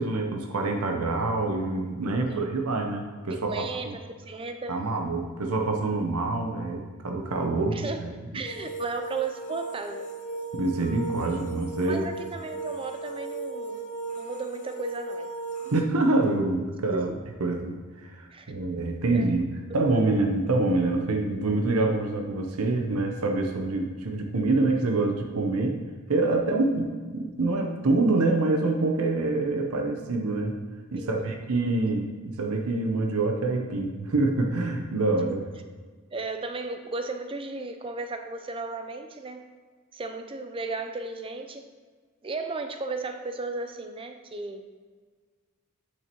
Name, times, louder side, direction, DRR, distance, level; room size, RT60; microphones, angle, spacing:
voice 1, 0.0-4.0 4.7-8.1 10.5-12.1 15.7-17.1 17.4-25.8 26.1-30.6 30.9-35.4, right 2 dB, 85° right, 2 dB, 0.7 m, -26 dB
voice 2, 3.5-4.8 7.7-8.0 8.3-10.1 11.8-13.8 14.2-15.3 16.9-17.0 18.3-18.5 19.1-19.3 19.8-20.2 31.0-31.4 35.3-35.4 36.1-39.5 39.9-41.6 42.2-44.7, right 3 dB, 25° right, 6 dB, 0.5 m, -35 dB
sound 1, 8.4-15.8, right 3 dB, 35° left, 0.5 m, -36 dB
8.6 x 6.4 x 3.0 m, 1.5 s
head